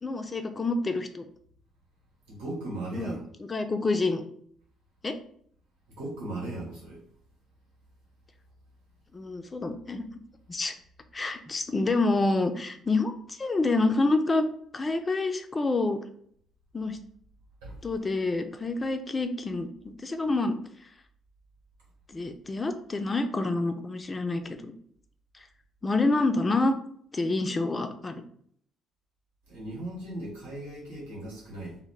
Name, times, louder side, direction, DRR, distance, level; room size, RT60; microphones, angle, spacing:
voice 1, 0.0-1.2 2.9-4.2 5.0-5.1 9.1-10.0 10.5-10.7 11.1-14.4 14.7-16.0 16.7-17.0 17.8-20.6 22.1-24.7 25.8-26.7 27.1-28.2, left 3 dB, 30° left, 7 dB, 0.4 m, -27 dB
voice 2, 2.3-3.2 6.0-7.0 17.6-17.8 29.5-31.8, right 1 dB, 80° right, -5 dB, 1.0 m, -37 dB
2.2 x 2.0 x 3.3 m, 0.63 s
hypercardioid pair, 50°, 0 cm